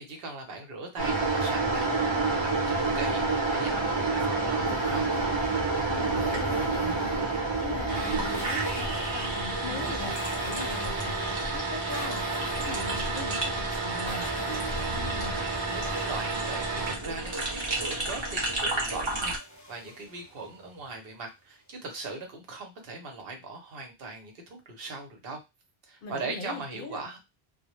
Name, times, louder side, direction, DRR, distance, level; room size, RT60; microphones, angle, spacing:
voice 1, 0.0-5.3 15.7-19.4 19.7-25.4 25.9-27.2, right 3 dB, 70° right, 2 dB, 0.9 m, -40 dB
sound 1, 1.0-19.4, right 3 dB, 30° right, 0.7 m, -29 dB
sound 2, 4.6-17.2 19.2-20.9, equal, 20° left, 0.5 m, -41 dB
voice 2, 6.1-7.3 7.6-12.2 12.7-15.4 26.0-27.0, left 3 dB, 65° left, 5 dB, 0.7 m, -41 dB
2.1 x 2.0 x 2.9 m, 0.23 s
omnidirectional pair, 1.0 m